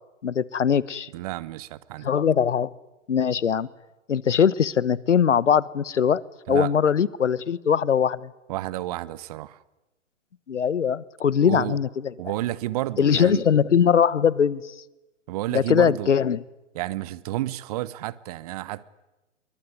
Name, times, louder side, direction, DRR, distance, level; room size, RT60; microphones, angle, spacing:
voice 1, 0.2-1.1 2.0-2.7 3.1-3.7 4.1-6.2 6.5-8.3 10.5-12.1 13.0-14.7 15.5-16.4, left 7 dB, 70° left, 1.4 m, -21 dB
voice 2, 1.1-2.1 6.5-6.7 8.5-9.6 11.4-11.8 12.2-13.4 15.3-16.1 16.7-18.9, right 15 dB, 30° right, 1.1 m, -31 dB
27.0 x 22.5 x 9.7 m
hypercardioid pair, 135°, 37 cm